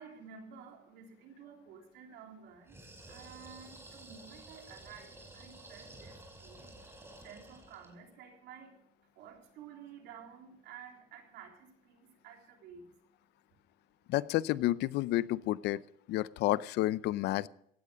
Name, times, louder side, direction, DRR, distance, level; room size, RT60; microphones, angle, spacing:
voice 1, 0.0-2.8 3.1-13.0, right 7 dB, 90° right, 2 dB, 3.6 m, -52 dB
sound 1, 2.6-8.0, right 1 dB, 15° right, 4.8 m, -52 dB
voice 2, 14.1-15.8 16.1-17.5, left 15 dB, 80° left, 19 dB, 0.6 m, -30 dB
17.0 x 13.0 x 5.1 m, 0.72 s
cardioid pair, 110°, 17 cm